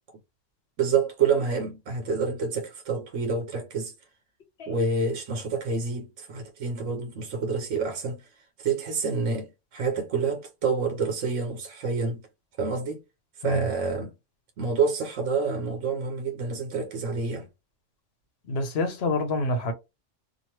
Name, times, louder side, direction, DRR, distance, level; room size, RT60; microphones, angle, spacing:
voice 1, 0.8-3.9 4.7-8.2 8.6-12.2 12.6-13.0 13.4-14.1 14.6-17.5, right 4 dB, 85° right, 1.1 m, -28 dB
voice 2, 18.5-19.7, left 2 dB, 65° left, 0.9 m, -26 dB
2.9 x 2.5 x 2.9 m
omnidirectional pair, 1.2 m